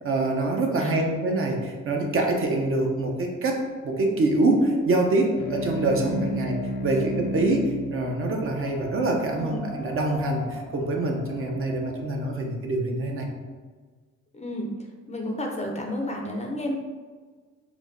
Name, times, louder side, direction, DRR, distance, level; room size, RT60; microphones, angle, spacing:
voice 1, 0.0-13.3, right 2 dB, 45° right, 2 dB, 0.6 m, -25 dB
Wind, 3.4-12.6, left 1 dB, 25° right, 0.9 m, -42 dB
sound 1, 5.4-10.2, left 1 dB, 75° left, 0.4 m, -34 dB
voice 2, 6.0-6.3 9.4-9.7 14.3-14.7 15.1-16.7, left 1 dB, 25° left, 1 dB, 0.5 m, -32 dB
4.4 x 2.1 x 2.5 m, 1.5 s
cardioid pair, 90°, 30 cm